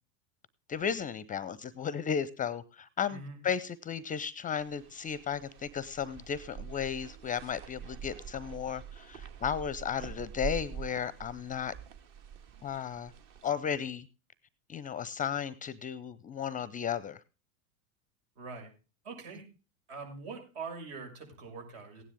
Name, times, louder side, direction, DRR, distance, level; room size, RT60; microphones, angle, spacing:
voice 1, 0.7-11.7 12.6-13.1 13.4-14.1 14.7-17.2, left 8 dB, 20° left, 20 dB, 0.5 m, -34 dB
voice 2, 3.1-3.4 18.3-18.7 19.0-19.4 19.9-22.0, right 4 dB, 65° right, 3 dB, 6.6 m, -43 dB
sound 1, 4.5-13.5, right 8 dB, 45° right, 1.9 m, -45 dB
16.0 x 9.9 x 3.6 m, 0.33 s
hypercardioid pair, 95°, 43 cm